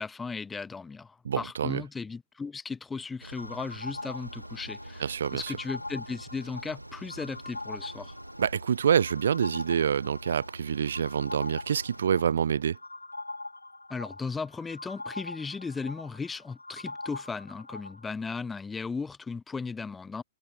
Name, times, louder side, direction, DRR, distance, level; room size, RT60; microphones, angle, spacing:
voice 1, 0.0-8.2 13.9-20.2, left 4 dB, 10° left, 0.8 m, -36 dB
voice 2, 1.3-1.8 5.0-5.6 8.4-12.8, right 8 dB, 60° right, 0.3 m, -27 dB
sound 1, 3.2-12.1, right 1 dB, 85° right, 1.6 m, -46 dB
sound 2, 3.4-18.1, left 2 dB, 80° left, 2.0 m, -42 dB
figure-of-eight pair, 115°, 0 cm